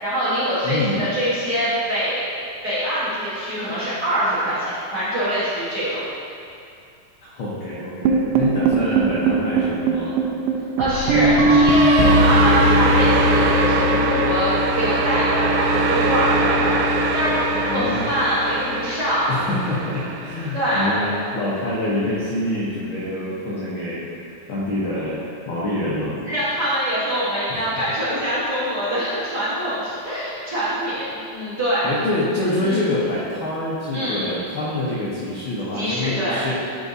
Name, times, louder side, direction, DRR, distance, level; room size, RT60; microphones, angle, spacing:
voice 1, 0.0-2.3 2.6-6.0 10.8-19.3 20.5-21.0 26.3-31.9 32.6-32.8 33.9-34.3 35.7-36.4, equal, 45° right, -12 dB, 1.3 m, -24 dB
voice 2, 0.6-1.1 7.2-10.2 17.6-18.1 19.3-25.2 25.5-26.2 27.5-27.9 31.8-36.5, left 1 dB, 75° left, -7 dB, 1.2 m, -26 dB
sound 1, 8.1-20.3, right 2 dB, 90° right, 2.0 m, -19 dB
10.0 x 4.7 x 2.7 m, 2.5 s
omnidirectional pair, 3.5 m